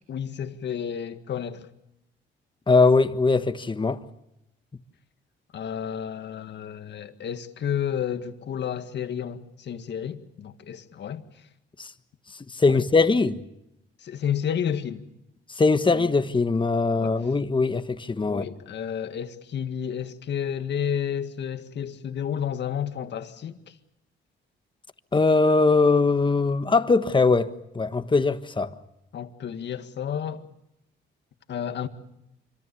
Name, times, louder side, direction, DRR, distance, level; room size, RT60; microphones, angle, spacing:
voice 1, 0.1-1.7 5.5-11.2 12.7-12.9 14.0-15.1 15.9-16.1 17.0-17.1 18.2-23.6 29.1-30.4 31.5-31.9, left 8 dB, 60° left, 1.9 m, -31 dB
voice 2, 2.7-4.0 11.8-11.9 12.5-13.4 15.6-18.4 25.1-28.7, left 3 dB, 25° left, 1.4 m, -21 dB
26.0 x 25.0 x 7.0 m
cardioid pair, 90°, 20 cm